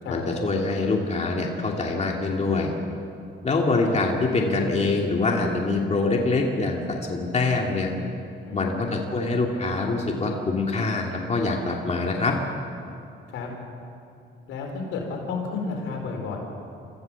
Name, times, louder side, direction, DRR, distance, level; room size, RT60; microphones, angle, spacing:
voice 1, 0.1-2.7 3.4-7.9 8.5-12.3, left 3 dB, 35° left, 0 dB, 2.7 m, -24 dB
voice 2, 8.5-9.1 13.3-13.5 14.5-16.4, left 4 dB, 90° left, 1 dB, 4.4 m, -32 dB
25.5 x 14.5 x 7.1 m, 2.7 s
cardioid pair, 90°, 20 cm